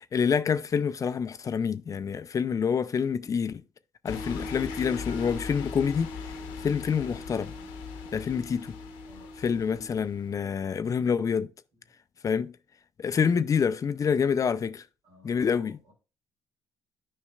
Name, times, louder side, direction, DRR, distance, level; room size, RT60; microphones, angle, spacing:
voice 1, 0.0-3.6 4.0-6.1 6.6-7.5 8.1-8.8 9.4-11.5 12.2-12.5 13.0-14.8 15.2-15.8, left 6 dB, 40° left, 0.5 m, -27 dB
sound 1, 4.1-10.3, left 7 dB, 90° left, 1.0 m, -41 dB
sound 2, 4.1-10.1, left 1 dB, 15° left, 1.4 m, -42 dB
voice 2, 9.0-9.4 11.7-11.8 15.0-15.9, left 1 dB, 80° right, 3.0 m, -55 dB
9.7 x 5.4 x 2.4 m
supercardioid pair, 60°, 8 cm